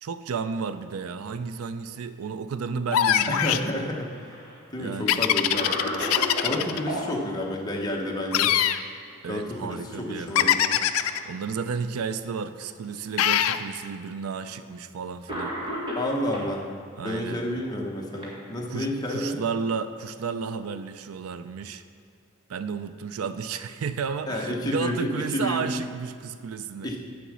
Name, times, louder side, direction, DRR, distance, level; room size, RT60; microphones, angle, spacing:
voice 1, 0.0-3.7 4.8-5.3 6.5-6.9 9.2-10.6 11.0-15.6 17.0-17.4 18.7-21.8 22.5-26.9, right 5 dB, 75° right, 11 dB, 0.4 m, -33 dB
sound 1, 2.9-3.7 5.1-6.8 8.3-8.8 10.3-11.2 13.2-13.6, left 11 dB, 75° left, 0.4 m, -22 dB
voice 2, 3.3-4.4 4.7-6.0 6.4-8.5 9.3-10.8 15.9-16.7 17.0-19.4 24.3-25.7 26.8-27.0, left 1 dB, 20° left, -1 dB, 1.0 m, -30 dB
Cough, 3.7-4.6 5.1-5.2 5.5-7.0 8.9-9.3 9.7-9.8 10.6-11.3 12.1-12.2 13.2-13.3 14.5-14.6 15.3-16.5 17.5-18.9, equal, 25° right, 1.8 m, -35 dB
8.2 x 6.9 x 6.2 m, 2.1 s
head